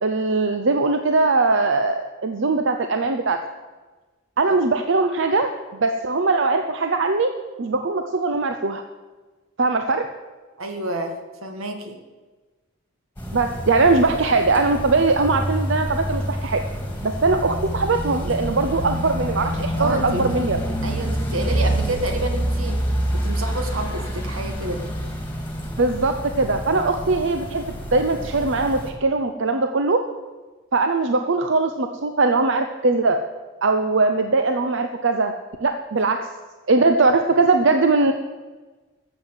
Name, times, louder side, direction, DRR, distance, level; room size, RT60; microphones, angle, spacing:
voice 1, 0.0-3.4 4.4-7.3 7.6-8.8 9.6-10.1 13.3-16.6 17.0-20.6 25.8-30.0 30.7-33.2 33.6-35.3 35.6-36.3 36.7-38.1, right 3 dB, 60° right, 6 dB, 0.7 m, -20 dB
voice 2, 10.6-11.2 11.4-12.0 19.8-20.3 20.8-22.8 23.1-24.8, right 1 dB, 85° right, 5 dB, 1.9 m, -29 dB
sound 1, 13.2-28.9, right 1 dB, 10° left, 2.0 m, -27 dB
13.5 x 7.6 x 8.0 m, 1.3 s
head